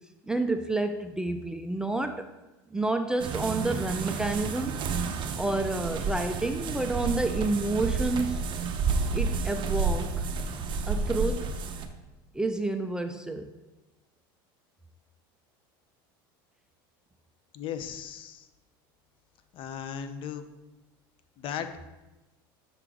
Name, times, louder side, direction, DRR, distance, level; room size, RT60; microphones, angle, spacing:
voice 1, 0.3-2.3 2.7-4.7 5.3-8.5 9.1-10.2 10.9-11.5 12.3-13.5, right 2 dB, 5° right, 7 dB, 0.3 m, -29 dB
sound 1, 3.2-11.9, right 5 dB, 45° right, 0.6 m, -30 dB
voice 2, 17.5-18.5 19.5-20.4 21.4-21.9, left 8 dB, 45° left, 10 dB, 0.6 m, -37 dB
5.7 x 3.8 x 4.6 m, 1.1 s
supercardioid pair, 110°, 12 cm